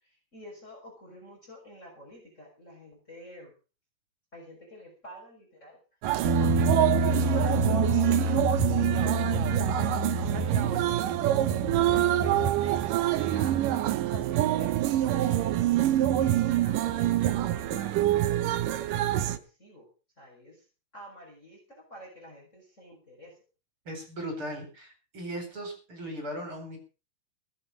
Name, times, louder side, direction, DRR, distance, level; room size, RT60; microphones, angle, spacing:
voice 1, 0.0-3.5 4.3-5.8 6.4-8.4 8.7-11.2 11.7-13.6 14.0-15.7 16.2-19.9 20.2-20.7 20.9-23.4, equal, 20° left, -1 dB, 6.3 m, -48 dB
sound 1, 6.0-19.4, right 13 dB, 75° right, 2.5 m, -26 dB
sound 2, 6.2-12.5, equal, 55° right, 1.0 m, -29 dB
voice 2, 23.8-26.8, equal, 40° right, 5 dB, 5.0 m, -37 dB
19.0 x 8.5 x 6.2 m, 0.35 s
omnidirectional pair, 3.9 m